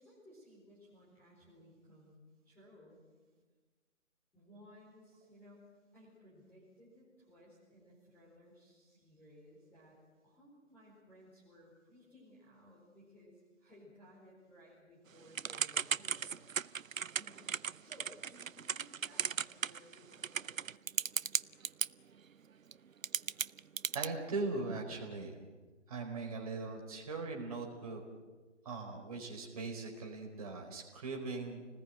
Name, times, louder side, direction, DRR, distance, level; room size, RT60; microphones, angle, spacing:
voice 1, 0.0-3.0 4.3-10.0 10.2-16.4 17.1-17.4 17.8-20.7, equal, 5° left, -9 dB, 4.6 m, -59 dB
Typing / Telephone, 15.4-21.9 22.7-22.8 23.0-24.1, right 7 dB, 80° right, 0.7 m, -35 dB
voice 2, 23.9-25.4 25.9-28.0 28.6-31.7, right 3 dB, 30° right, 1 dB, 4.5 m, -40 dB
29.5 x 20.0 x 9.2 m, 1.3 s
figure-of-eight pair, 160°, 39 cm